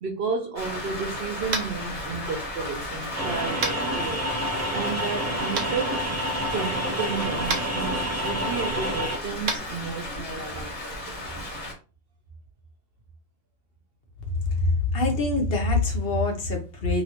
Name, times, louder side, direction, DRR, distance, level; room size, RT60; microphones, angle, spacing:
voice 1, 0.0-4.3 4.7-6.1 6.5-11.2 11.4-11.5, right 5 dB, 60° right, 0.8 m, -32 dB
Rain, 0.6-11.7, left 1 dB, 35° left, 1.6 m, -35 dB
Tap, 1.5-1.8 3.6-3.8 5.6-5.7 7.5-7.6 9.4-9.6, right 4 dB, 90° right, 1.1 m, -27 dB
sound 1, 3.2-9.2, equal, 20° right, 0.4 m, -29 dB
voice 2, 14.9-17.0, left 2 dB, 55° left, 1.0 m, -24 dB
3.0 x 2.7 x 2.9 m
omnidirectional pair, 1.3 m